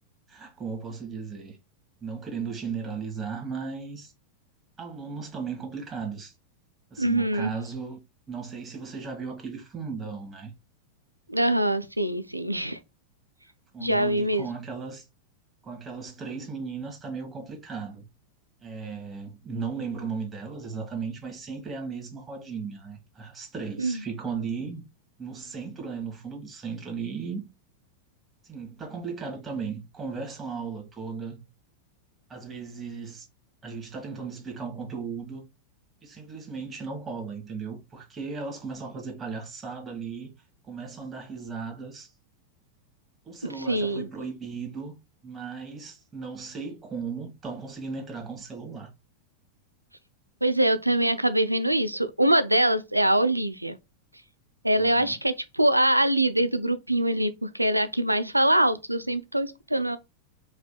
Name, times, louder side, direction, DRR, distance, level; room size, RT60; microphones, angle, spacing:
voice 1, 0.3-1.6 2.0-4.1 4.8-6.3 6.9-8.0 8.3-10.5 13.7-15.0 15.6-18.0 18.6-24.8 25.2-27.5 28.4-31.4 32.3-33.3 33.6-35.4 36.0-40.3 40.7-42.1 43.2-44.9 45.2-48.9 54.8-55.2, right 5 dB, 20° right, 1.6 m, -36 dB
voice 2, 7.0-7.5 11.3-12.8 13.8-14.5 23.8-24.0 43.7-44.1 50.4-53.8 54.6-60.0, right 1 dB, 85° right, 0.4 m, -24 dB
4.8 x 3.5 x 2.2 m
figure-of-eight pair, 90°, 0 cm